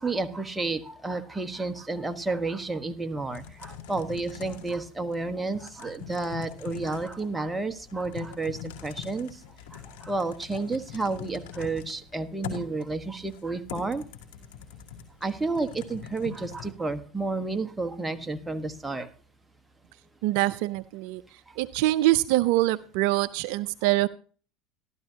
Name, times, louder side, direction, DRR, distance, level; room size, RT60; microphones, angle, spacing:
voice 1, 0.0-9.4 9.7-14.0 15.2-19.1 21.5-21.6, right 3 dB, 10° right, 8 dB, 1.3 m, -31 dB
Typing, 3.3-16.7, left 9 dB, 75° left, 2.7 m, -43 dB
voice 2, 20.2-21.2 21.6-24.1, right 17 dB, 70° right, 16 dB, 0.4 m, -24 dB
13.5 x 12.5 x 2.8 m, 0.40 s
hypercardioid pair, 85°, 0 cm